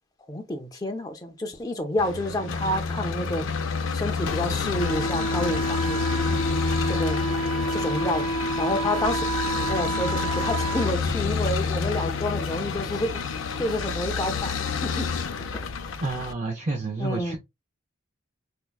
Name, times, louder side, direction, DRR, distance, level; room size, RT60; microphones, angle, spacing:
voice 1, 0.3-3.5 3.9-6.1 6.9-7.2 7.7-8.3 8.6-9.2 9.6-13.2 13.6-15.1 15.5-15.6 17.0-17.4, left 1 dB, 20° left, 0.6 m, -29 dB
sound 1, 2.0-16.3, left 5 dB, 80° left, 0.5 m, -29 dB
Wind instrument woodwind instrument, 4.7-10.9, right 2 dB, 70° right, 1.6 m, -29 dB
voice 2, 16.0-17.4, right 3 dB, 35° right, 0.5 m, -29 dB
4.5 x 2.2 x 2.3 m
head